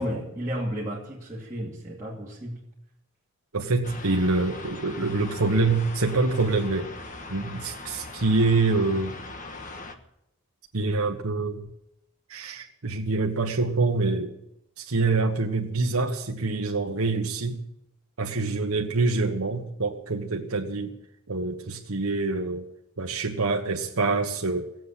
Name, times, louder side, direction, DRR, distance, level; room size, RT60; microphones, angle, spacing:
voice 1, 0.0-2.6, equal, 15° right, -8 dB, 2.5 m, -33 dB
voice 2, 3.5-6.9 7.3-9.2 10.7-11.6 12.3-14.3 14.8-17.6 18.2-20.9 21.3-22.7 23.0-24.7, right 3 dB, 85° right, 1 dB, 1.3 m, -25 dB
sound 1, 3.8-10.0, left 3 dB, 35° left, 1.4 m, -40 dB
17.0 x 7.9 x 9.9 m, 0.82 s
head